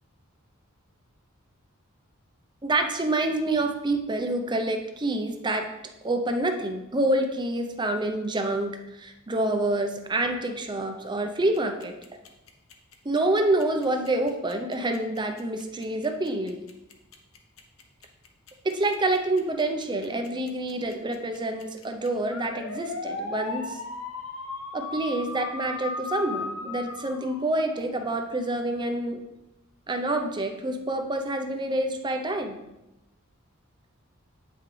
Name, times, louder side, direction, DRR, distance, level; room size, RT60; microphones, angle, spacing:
voice 1, 2.6-5.7 6.0-12.0 13.0-16.6 18.6-23.8 24.7-29.2 29.9-32.6, right 2 dB, 20° right, 5 dB, 0.7 m, -27 dB
sound 1, 11.5-28.0, left 3 dB, 75° left, 0.9 m, -37 dB
8.8 x 6.0 x 3.3 m, 0.94 s
head